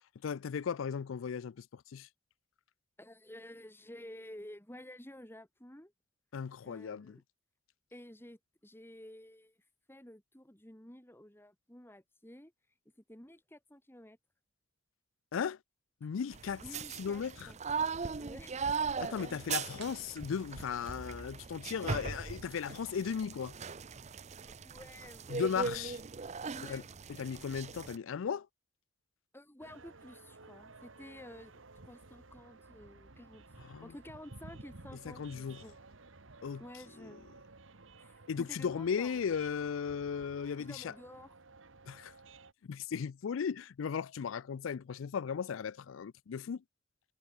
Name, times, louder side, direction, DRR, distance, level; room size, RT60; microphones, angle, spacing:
voice 1, 0.2-2.1 6.3-7.2 15.3-15.6 16.0-16.6 17.0-17.5 19.0-23.5 25.3-26.0 26.7-26.8 27.1-28.5 33.7-33.9 35.2-35.6 36.4-36.6 37.0-37.1 38.3-40.9 41.9-42.1 42.6-46.6, left 6 dB, 80° left, 0.4 m, -36 dB
voice 2, 3.0-5.9 6.6-7.2 7.9-9.6 9.9-12.5 13.1-14.2 16.6-17.6 18.1-18.6 21.7-21.9 24.4-25.5 26.4-26.9 29.3-33.5 33.8-35.8 36.6-37.3 38.0-39.2 40.6-41.4, left 1 dB, 10° left, 2.3 m, -52 dB
sound 1, 16.3-28.0, right 5 dB, 35° right, 0.6 m, -39 dB
sound 2, 19.8-21.5, right 8 dB, 60° right, 7.3 m, -58 dB
sound 3, 29.6-42.5, right 3 dB, 75° right, 1.7 m, -55 dB
head